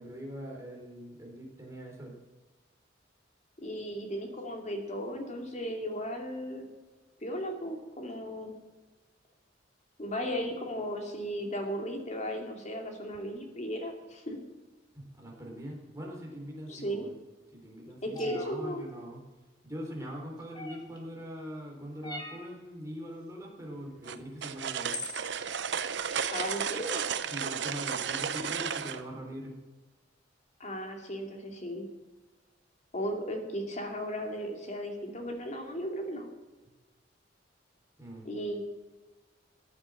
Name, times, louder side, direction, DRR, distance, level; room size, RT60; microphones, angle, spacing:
voice 1, 0.0-2.2 14.9-17.1 17.5-19.2 19.6-25.0 27.3-29.6 38.0-38.3, equal, 15° right, -1 dB, 3.7 m, -42 dB
voice 2, 3.6-6.7 7.2-8.5 10.0-14.4 16.7-17.1 18.0-18.8 26.3-27.1 30.6-31.9 32.9-36.3 38.2-38.6, equal, 40° left, 3 dB, 2.5 m, -36 dB
sound 1, 18.1-18.5 20.5-21.0 22.0-22.5 24.2-24.3 24.9-25.3, left 1 dB, 25° left, 1.9 m, -40 dB
sound 2, 24.1-29.0, right 7 dB, 65° right, 0.8 m, -33 dB
14.5 x 8.6 x 7.5 m, 1.2 s
head